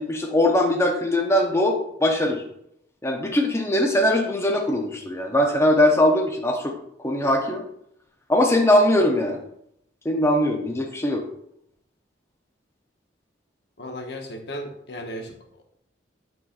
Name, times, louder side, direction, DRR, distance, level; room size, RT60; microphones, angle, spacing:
voice 1, 0.0-2.4 3.0-6.7 7.0-7.6 8.3-9.4 10.0-11.2, left 1 dB, 15° left, 1 dB, 0.7 m, -21 dB
voice 2, 13.8-15.3, equal, 65° left, 4 dB, 0.9 m, -35 dB
7.4 x 6.1 x 2.5 m, 0.73 s
head